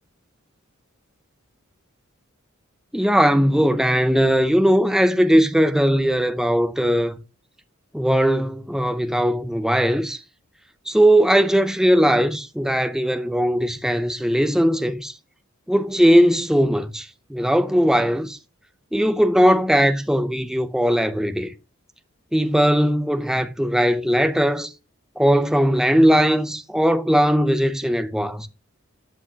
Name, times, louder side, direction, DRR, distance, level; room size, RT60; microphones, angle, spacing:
voice 1, 2.9-7.2 7.9-10.2 10.9-15.1 15.7-18.4 18.9-21.5 22.3-24.7 25.2-28.5, equal, ahead, 0.5 m, -19 dB
12.5 x 8.0 x 2.8 m
head